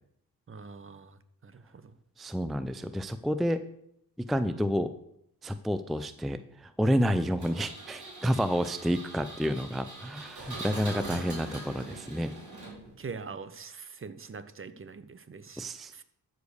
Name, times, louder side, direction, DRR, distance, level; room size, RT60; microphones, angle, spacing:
voice 1, 0.5-1.9 8.2-8.3 13.0-15.7 15.9-16.0, right 5 dB, 35° right, 13 dB, 0.8 m, -43 dB
voice 2, 2.2-3.6 4.3-4.9 5.4-12.3 15.6-16.0, equal, ahead, 12 dB, 0.4 m, -29 dB
Engine, 7.4-13.1, right 2 dB, 50° right, 4.6 m, -42 dB
13.5 x 5.1 x 6.5 m, 0.74 s
cardioid pair, 105°, 37 cm